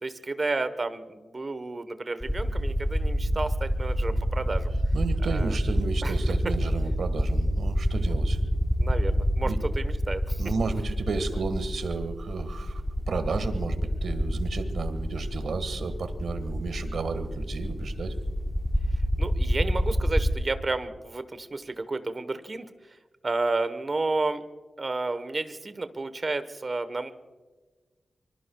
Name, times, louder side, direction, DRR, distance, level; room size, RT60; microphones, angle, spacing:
voice 1, 0.0-4.7 5.2-5.6 6.0-6.1 7.9-8.2 8.8-10.4 11.1-11.2 19.2-22.7 23.2-24.4 24.8-27.1, right 3 dB, 35° right, 11 dB, 1.1 m, -31 dB
sound 1, 2.2-20.3, equal, ahead, 1.0 m, -27 dB
voice 2, 4.9-8.4 9.4-9.6 10.4-12.8 13.1-18.1, right 4 dB, 85° right, 9 dB, 1.5 m, -32 dB
25.0 x 25.0 x 2.3 m, 1.3 s
wide cardioid pair, 145°, 0 cm